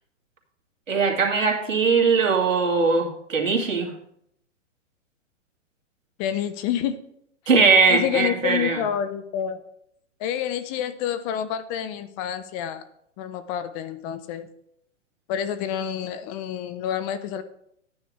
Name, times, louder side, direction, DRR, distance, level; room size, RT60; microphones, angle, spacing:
voice 1, 0.9-3.9 7.5-8.8, right 4 dB, 85° right, 1 dB, 2.3 m, -20 dB
voice 2, 6.2-7.0 7.9-9.6 10.2-12.8 13.2-14.5 15.3-17.4, left 9 dB, 30° left, 12 dB, 0.6 m, -28 dB
12.5 x 9.4 x 3.2 m, 0.72 s
hypercardioid pair, 125°, 37 cm